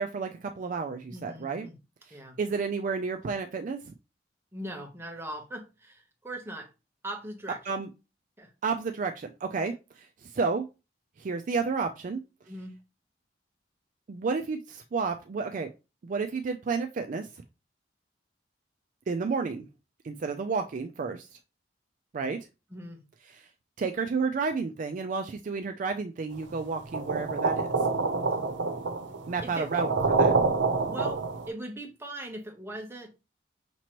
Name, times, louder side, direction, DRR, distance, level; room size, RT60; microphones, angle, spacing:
voice 1, 0.0-1.7 2.4-3.8 7.7-7.9 8.6-10.7 11.2-12.2 14.1-15.7 16.0-17.3 19.1-19.7 20.0-21.4 22.1-22.5 23.3-23.5 23.8-27.7 29.3-30.3, right 4 dB, 45° right, 0.4 m, -31 dB
voice 2, 1.1-1.7 2.1-2.4 4.5-6.7 7.0-7.6 8.4-8.5 12.5-12.8 22.7-23.0 29.4-29.7 30.9-33.1, right 1 dB, 15° right, 0.9 m, -40 dB
sound 1, 26.9-31.5, right 4 dB, 85° right, 0.7 m, -27 dB
6.0 x 2.9 x 3.0 m
head